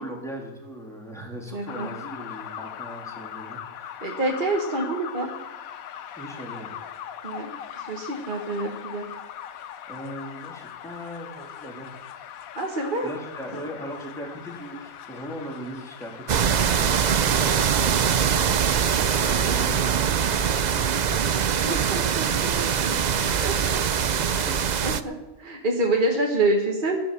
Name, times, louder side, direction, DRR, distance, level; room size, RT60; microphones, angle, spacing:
voice 1, 0.0-4.1 6.1-6.7 9.6-11.9 13.0-21.7 22.7-22.9 23.6-23.8 24.3-25.0, equal, ahead, -2 dB, 3.2 m, -39 dB
voice 2, 1.5-1.9 4.0-5.3 7.2-7.5 7.8-9.0 12.5-13.1 21.6-24.0 24.4-27.0, right 2 dB, 35° right, 0 dB, 1.5 m, -27 dB
sound 1, 1.7-17.2, left 9 dB, 75° left, 1.1 m, -40 dB
sound 2, 16.3-25.0, right 7 dB, 85° right, 0.3 m, -23 dB
14.5 x 10.5 x 6.8 m, 1.1 s
omnidirectional pair, 1.5 m